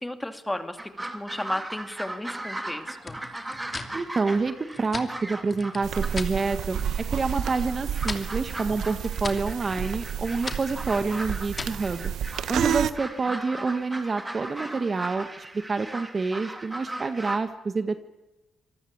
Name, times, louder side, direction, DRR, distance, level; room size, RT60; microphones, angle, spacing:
voice 1, 0.0-3.2, left 1 dB, 10° left, 8 dB, 2.3 m, -34 dB
sound 1, 0.8-17.4, right 1 dB, 15° right, 3.0 m, -38 dB
sound 2, 3.0-6.4 6.7-7.3 7.6-11.9, left 3 dB, 30° left, 2.7 m, -39 dB
voice 2, 3.9-6.8 7.1-12.1 12.5-18.0, right 4 dB, 30° right, 9 dB, 1.6 m, -28 dB
sound 3, 5.8-12.9, right 9 dB, 70° right, 1.2 m, -31 dB
26.0 x 18.5 x 8.7 m, 1.0 s
cardioid pair, 90°, 0 cm